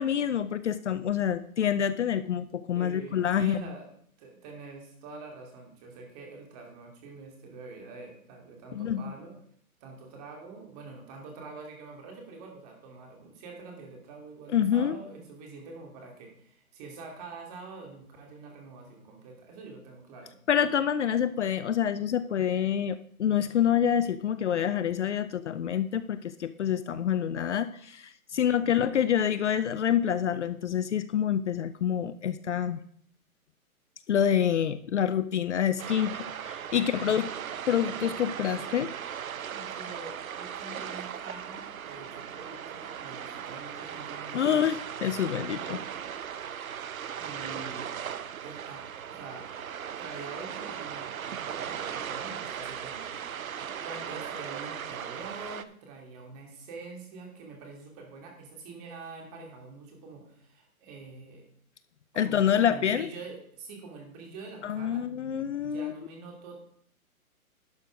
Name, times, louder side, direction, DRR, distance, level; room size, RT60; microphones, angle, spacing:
voice 1, 0.0-3.6 8.7-9.1 14.5-15.0 20.5-32.8 34.1-37.3 37.7-38.9 44.3-45.8 62.1-63.1 64.6-65.9, left 9 dB, 55° left, 13 dB, 0.6 m, -27 dB
voice 2, 2.7-3.9 4.2-9.4 9.8-20.4 28.4-28.9 36.9-37.2 39.5-44.7 47.1-48.1 48.4-49.5 50.0-61.4 62.1-65.0 65.6-66.6, right 3 dB, 25° right, 1 dB, 2.6 m, -45 dB
sound 1, 35.8-55.6, right 8 dB, 70° right, 0.8 m, -38 dB
11.5 x 6.2 x 5.1 m, 0.64 s
hypercardioid pair, 145°, 43 cm